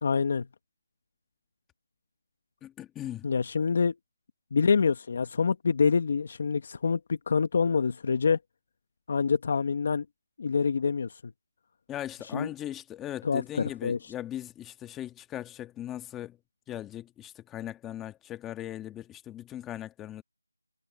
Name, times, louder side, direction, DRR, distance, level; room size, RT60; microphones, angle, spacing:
voice 1, 0.0-0.5 3.2-3.9 4.5-8.4 9.1-10.0 10.4-11.2 12.3-12.5 13.2-13.4 13.8-14.0, left 5 dB, 25° left, 1.1 m, -26 dB
voice 2, 2.6-3.3 11.9-16.4 16.7-20.2, left 12 dB, 5° left, 1.6 m, -39 dB
figure-of-eight pair, 175°, 0 cm